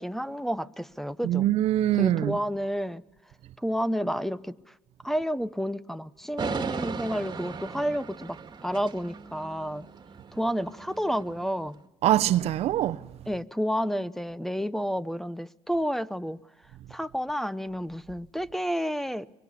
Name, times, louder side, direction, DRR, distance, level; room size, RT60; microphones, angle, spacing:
voice 1, 0.0-1.5 2.0-3.0 3.6-4.6 5.0-9.9 10.3-11.8 13.3-16.4 16.9-19.3, equal, 5° left, 0.9 m, -30 dB
voice 2, 1.2-2.4 12.0-13.0, right 13 dB, 65° right, 0.8 m, -23 dB
sound 1, 6.4-11.7, right 5 dB, 40° right, 2.0 m, -37 dB
23.5 x 23.5 x 8.4 m
supercardioid pair, 70°, 11 cm